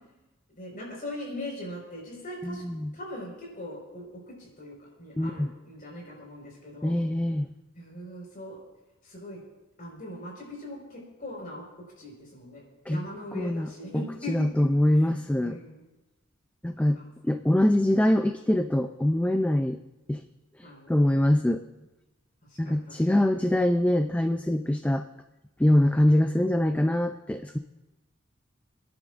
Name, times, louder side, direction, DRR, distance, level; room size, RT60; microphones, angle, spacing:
voice 1, 0.5-2.6 2.9-6.9 7.7-8.6 9.0-9.4 9.8-11.6 12.0-14.7 15.4-15.8 16.8-17.1 20.6-20.9 22.5-23.3, left 1 dB, 45° left, -3 dB, 4.8 m, -41 dB
voice 2, 2.4-2.9 5.2-5.5 6.8-7.5 12.9-13.0 13.3-15.6 16.6-17.0 17.2-19.8 20.1-20.2 20.9-21.6 22.6-25.0 25.6-27.6, left 1 dB, 5° left, 8 dB, 0.4 m, -24 dB
29.0 x 10.5 x 2.5 m, 1.0 s
head